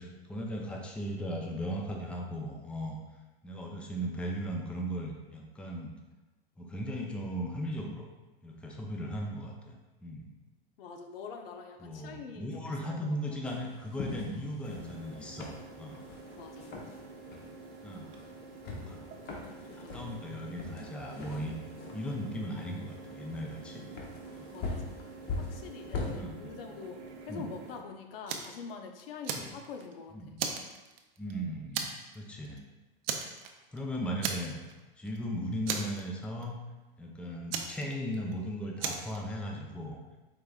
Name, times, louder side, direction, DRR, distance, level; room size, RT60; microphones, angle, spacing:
voice 1, 0.0-3.0 3.4-5.9 6.6-8.1 8.4-10.3 11.8-16.0 17.8-18.1 18.7-19.0 19.7-21.5 21.9-24.0 24.3-24.5 26.1-26.5 27.3-27.5 29.3-29.5 30.1-30.5 31.2-31.8 32.1-32.6 33.7-34.7 35.0-36.6 37.0-40.0, equal, 5° left, -1 dB, 0.5 m, -37 dB
voice 2, 10.8-13.0 16.4-16.8 19.6-20.0 24.5-25.0 25.5-30.3, left 5 dB, 75° left, 4 dB, 0.7 m, -45 dB
sound 1, 13.5-26.2, left 3 dB, 35° left, 0.8 m, -43 dB
sound 2, 14.6-27.8, right 3 dB, 45° right, 0.8 m, -48 dB
Fire, 28.3-28.6 29.0-29.9 30.4-31.3 31.7-32.2 32.4-32.6 33.0-33.8 34.2-34.8 35.1-35.2 35.7-36.5 37.5-38.3 38.8-39.2, right 6 dB, 75° right, 0.6 m, -35 dB
4.9 x 3.7 x 2.3 m, 1.1 s
hypercardioid pair, 115°, 29 cm